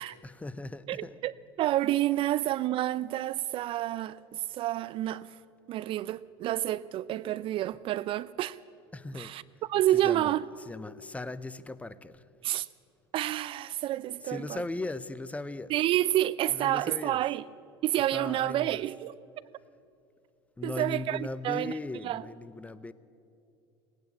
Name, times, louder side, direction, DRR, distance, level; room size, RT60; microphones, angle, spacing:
voice 1, 0.0-1.2 7.7-7.8 8.9-9.3 9.9-12.2 14.2-15.8 16.4-17.2 18.0-18.8 20.6-22.9, left 2 dB, 10° left, 0.5 m, -38 dB
voice 2, 0.9-1.3 1.6-5.4 5.7-8.6 9.1-9.4 9.7-10.5 12.4-12.7 13.1-14.6 15.7-17.4 17.8-19.1 20.6-21.7 22.0-22.2, right 14 dB, 40° right, 0.4 m, -29 dB
18.0 x 9.2 x 8.5 m
hypercardioid pair, 80°, 13 cm